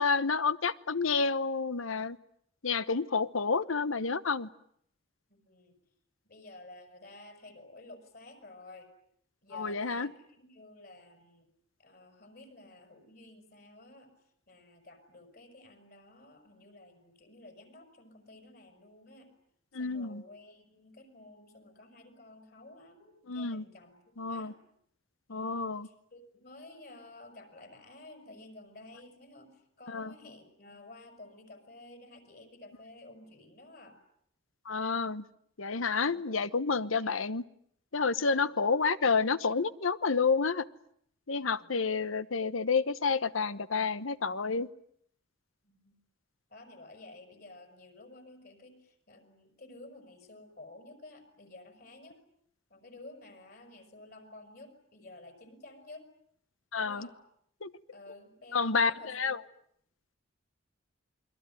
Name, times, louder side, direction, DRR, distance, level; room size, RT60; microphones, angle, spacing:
voice 1, 0.0-2.2 2.6-4.5 9.5-10.1 19.7-20.2 23.3-23.6 24.2-24.5 25.3-25.9 29.9-30.1 34.7-35.2 35.6-37.4 37.9-40.6 41.3-44.7 56.7-57.1 57.6-57.7 58.5-59.4, left 4 dB, 85° left, 14 dB, 1.1 m, -29 dB
voice 2, 5.3-5.8 6.2-8.9 9.4-11.5 11.8-14.1 14.5-19.3 19.7-24.7 25.3-34.0 36.1-36.4 38.3-38.8 41.4-41.7 45.6-46.0 46.5-52.2 52.7-56.1 56.8-57.2 57.9-59.4, left 2 dB, 50° left, 6 dB, 5.7 m, -52 dB
28.5 x 22.5 x 9.1 m, 0.70 s
head